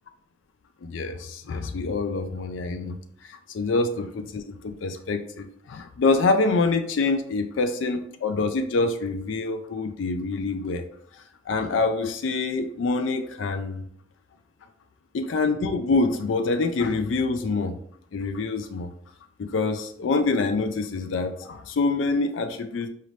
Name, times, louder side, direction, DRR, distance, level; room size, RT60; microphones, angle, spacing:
voice 1, 0.8-3.0 3.2-10.9 11.1-13.8 15.1-17.8 18.1-18.9 19.4-22.9, left 3 dB, 85° left, 7 dB, 0.4 m, -26 dB
4.9 x 2.8 x 3.2 m, 0.64 s
head